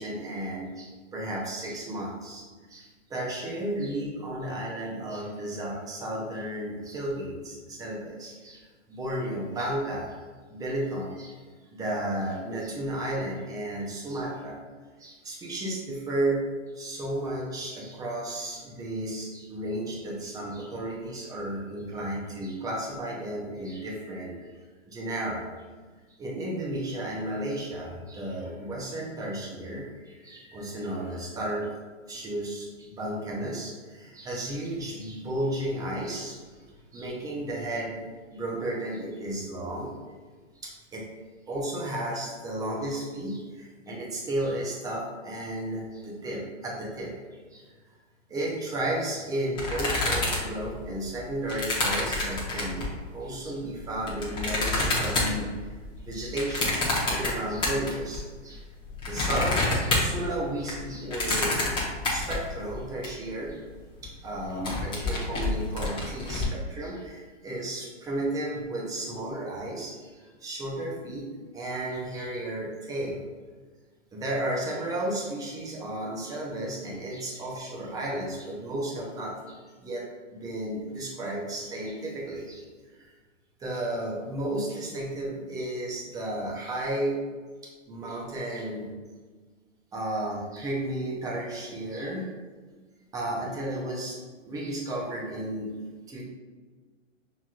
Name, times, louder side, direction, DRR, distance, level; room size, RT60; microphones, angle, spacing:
voice 1, 0.0-10.2 10.5-11.4 11.7-14.6 15.0-16.5 16.7-24.5 24.9-25.5 26.2-31.7 32.1-36.6 36.9-38.1 38.3-39.9 40.6-41.1 41.5-47.2 47.5-47.7 48.3-52.9 53.1-55.7 56.0-56.8 57.0-58.6 59.0-61.6 62.1-63.6 64.0-73.2 74.1-80.1 80.3-82.6 82.9-83.1 83.6-87.2 87.6-88.9 89.9-92.3 93.1-94.2 94.5-95.7 96.1-96.3, right 1 dB, 10° right, -3 dB, 0.6 m, -33 dB
sound 1, 49.5-53.0 53.6-58.2 58.5-63.1 63.5-63.6 63.7-64.0 64.4-66.5, left 2 dB, 15° left, 0.9 m, -28 dB
5.8 x 3.0 x 2.4 m, 1.4 s
hypercardioid pair, 130°, 37 cm